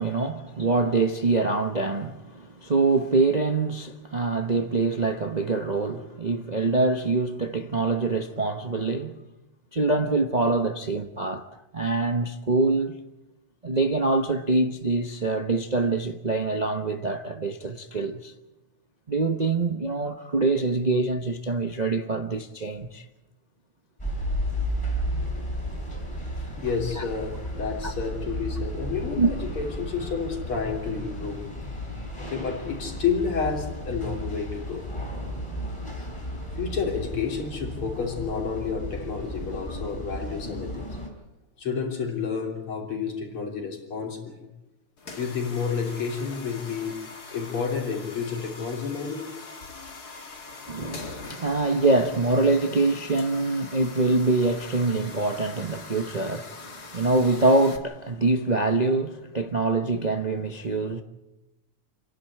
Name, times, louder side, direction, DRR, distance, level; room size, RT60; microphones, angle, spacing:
voice 1, 0.0-9.2 9.7-11.5 11.7-13.0 13.6-18.3 19.1-23.0 27.0-27.1 27.8-27.9 29.2-29.3 50.7-61.0, right 3 dB, 40° right, 0.6 m, -25 dB
sound 1, 24.0-41.1, equal, 15° left, 4.2 m, -33 dB
voice 2, 25.1-25.4 26.6-31.7 32.2-34.9 36.5-40.9 41.6-44.5 45.2-49.4, left 6 dB, 85° left, 4.1 m, -30 dB
sound 2, 45.0-57.8, left 4 dB, 45° left, 2.5 m, -42 dB
28.5 x 11.5 x 9.9 m
omnidirectional pair, 2.3 m